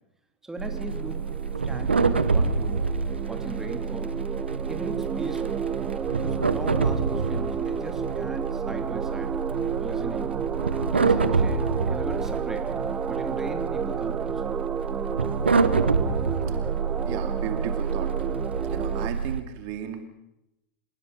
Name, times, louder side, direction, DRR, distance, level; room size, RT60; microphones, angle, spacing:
voice 1, 0.4-1.3 1.7-2.9 3.3-4.1 4.5-5.6 6.1-9.4 9.8-10.4 10.9-14.4, right 2 dB, 10° right, 5 dB, 3.2 m, -39 dB
sound 1, 0.6-19.1, right 7 dB, 25° right, 1.0 m, -32 dB
sound 2, 0.6-19.4, right 4 dB, 90° right, 1.2 m, -27 dB
voice 2, 17.1-18.4 18.6-20.0, right 10 dB, 50° right, 7 dB, 2.4 m, -35 dB
28.0 x 17.0 x 5.5 m, 0.86 s
hypercardioid pair, 95°, 6 cm